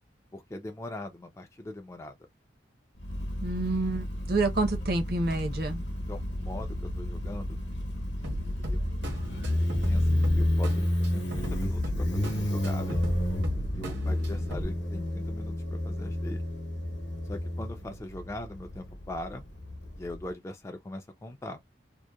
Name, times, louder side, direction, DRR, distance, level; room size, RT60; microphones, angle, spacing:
voice 1, 0.3-2.2 6.1-7.6 8.2-8.8 9.6-10.9 11.1-13.0 13.7-16.4 17.2-19.4 20.0-21.6, left 1 dB, 15° left, 0.3 m, -41 dB
Motorcycle, 3.0-20.2, left 1 dB, 65° left, 0.9 m, -31 dB
voice 2, 3.4-5.8, right 2 dB, 55° right, 0.7 m, -28 dB
sound 1, 8.2-14.6, equal, 75° right, 1.0 m, -36 dB
2.8 x 2.1 x 2.2 m
head